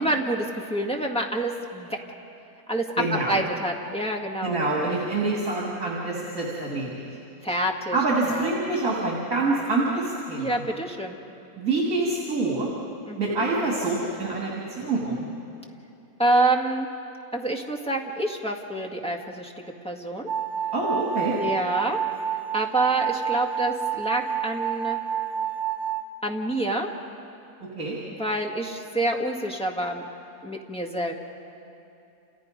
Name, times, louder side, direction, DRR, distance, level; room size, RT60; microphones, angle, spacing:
voice 1, 0.0-2.0 2.7-4.6 7.4-8.0 8.2-8.5 10.4-11.2 13.1-13.3 16.2-16.9 17.3-19.5 19.8-20.3 21.3-22.0 22.5-25.0 26.2-26.9 28.2-30.0 30.4-31.1, right 1 dB, 5° left, 0 dB, 1.9 m, -27 dB
voice 2, 3.0-3.4 4.4-7.1 7.9-10.6 11.6-12.7 13.2-15.3 20.7-21.4 27.8-28.0, right 3 dB, 65° right, -4 dB, 3.5 m, -26 dB
sound 1, 20.3-26.0, right 9 dB, 80° right, 1.9 m, -29 dB
29.5 x 29.0 x 5.3 m, 2.8 s
omnidirectional pair, 1.6 m